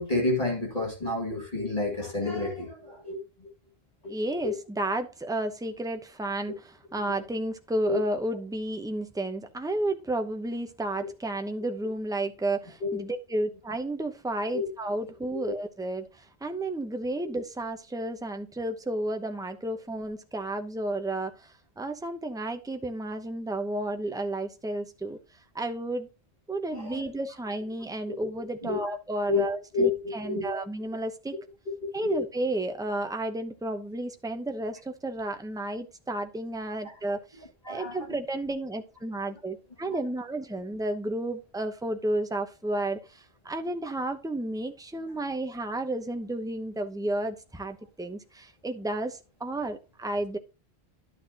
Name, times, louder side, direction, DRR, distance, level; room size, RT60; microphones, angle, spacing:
voice 1, 0.0-3.5 4.0-4.1 4.4-4.6 7.8-8.0 11.0-11.1 12.8-13.0 14.5-14.7 26.7-27.0 28.1-28.2 28.6-28.9 29.3-30.6 31.7-32.2 37.6-38.0, left 3 dB, 40° left, 2.2 m, -30 dB
voice 2, 4.1-25.2 25.5-26.1 26.5-31.4 31.9-50.4, right 1 dB, 5° right, 0.8 m, -32 dB
12.0 x 6.3 x 2.9 m
omnidirectional pair, 1.1 m